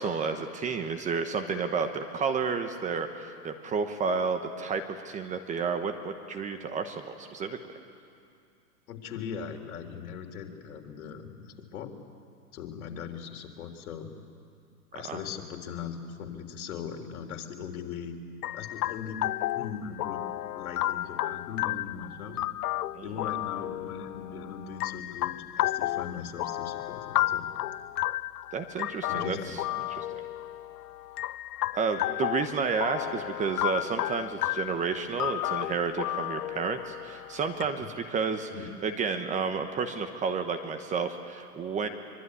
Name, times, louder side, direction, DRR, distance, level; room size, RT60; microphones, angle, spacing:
voice 1, 0.0-7.6 15.1-15.2 22.9-23.2 28.5-29.6 29.9-30.2 31.7-38.5 38.8-41.9, right 5 dB, 15° right, 7 dB, 1.1 m, -31 dB
voice 2, 8.9-11.9 12.5-14.1 14.9-18.2 18.5-19.2 19.5-20.2 20.5-22.4 23.0-27.5 29.1-29.7 37.8-37.9 38.5-38.7, left 7 dB, 65° left, 4 dB, 3.6 m, -39 dB
sound 1, 18.4-37.6, left 14 dB, 85° left, 0.6 m, -32 dB
24.5 x 23.5 x 9.8 m, 2.4 s
hypercardioid pair, 140°, 46 cm